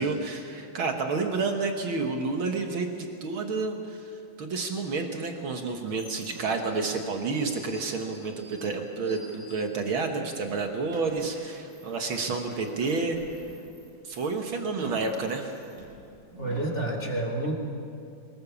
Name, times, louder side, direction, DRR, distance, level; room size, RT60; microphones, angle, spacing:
voice 1, 0.0-13.2 14.0-15.6, right 4 dB, 70° right, 4 dB, 1.2 m, -30 dB
sound 1, 5.5-10.1 10.4-16.8, equal, 90° right, 7.9 m, -48 dB
voice 2, 16.4-17.5, right 2 dB, 25° left, 0 dB, 1.7 m, -29 dB
23.5 x 20.5 x 7.1 m, 2.6 s
omnidirectional pair, 4.4 m